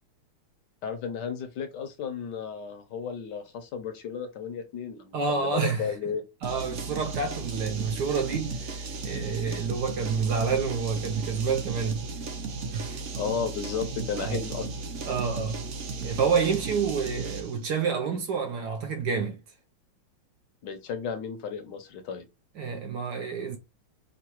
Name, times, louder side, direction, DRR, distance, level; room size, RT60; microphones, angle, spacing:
voice 1, 0.8-6.2 13.2-14.7 20.6-22.2, left 6 dB, 70° left, 1.1 m, -33 dB
voice 2, 5.1-5.9 6.4-12.1 12.7-13.0 14.2-14.4 15.1-15.7 16.0-19.4 22.6-23.6, right 5 dB, 70° right, 1.1 m, -28 dB
sound 1, 6.4-17.6, right 3 dB, 85° right, 0.6 m, -35 dB
6.6 x 2.2 x 2.9 m
omnidirectional pair, 2.3 m